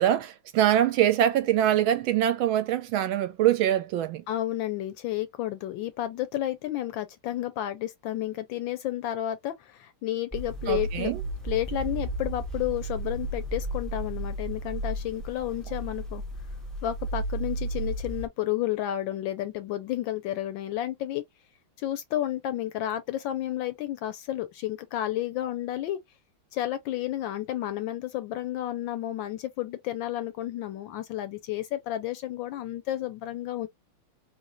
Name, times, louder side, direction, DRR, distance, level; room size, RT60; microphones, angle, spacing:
voice 1, 0.0-4.2 10.7-11.2, right 11 dB, 75° right, 1.3 m, -24 dB
voice 2, 4.3-11.1 11.4-16.2 16.8-21.3 21.8-26.0 26.5-33.7, left 13 dB, 75° left, 1.2 m, -31 dB
sound 1, 10.3-18.3, right 2 dB, ahead, 0.4 m, -33 dB
3.9 x 3.2 x 2.9 m
omnidirectional pair, 2.4 m